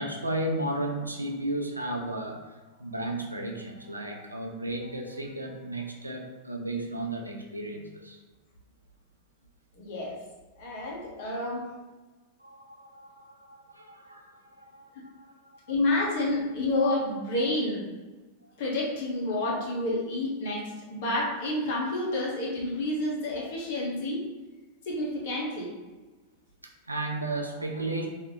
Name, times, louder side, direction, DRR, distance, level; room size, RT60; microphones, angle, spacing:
voice 1, 0.0-8.2 12.4-15.7 19.5-19.6 26.6-28.1, right 1 dB, 85° right, 1 dB, 0.5 m, -34 dB
voice 2, 9.8-10.2 10.6-11.6 15.7-17.9 18.6-24.2 24.9-25.7, left 2 dB, 50° left, -3 dB, 1.1 m, -29 dB
3.3 x 2.7 x 3.6 m, 1.3 s
figure-of-eight pair, 90°, 0 cm